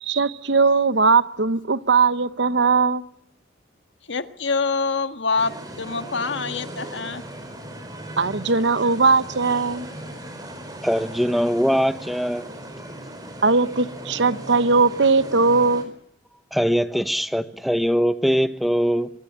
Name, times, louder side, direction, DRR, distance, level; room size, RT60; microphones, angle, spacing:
voice 1, 0.0-3.1 8.2-9.9 13.4-15.9, right 4 dB, 70° right, 1.0 m, -19 dB
voice 2, 4.1-7.2, left 4 dB, 75° left, 1.6 m, -25 dB
sound 1, 5.4-15.8, right 1 dB, 20° right, 4.4 m, -38 dB
voice 3, 10.8-12.5 16.5-19.1, equal, ahead, 1.1 m, -22 dB
25.0 x 19.0 x 8.8 m
head